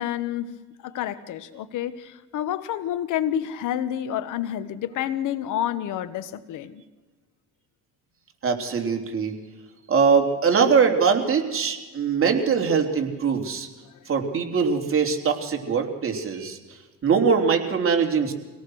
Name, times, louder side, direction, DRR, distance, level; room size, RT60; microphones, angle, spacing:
voice 1, 0.0-6.8, left 11 dB, 85° left, 1.2 m, -29 dB
voice 2, 8.4-9.3 9.9-13.7 14.1-16.6 17.0-18.3, right 6 dB, 45° right, 3.3 m, -22 dB
25.0 x 18.0 x 6.3 m
cardioid pair, 90°, 30 cm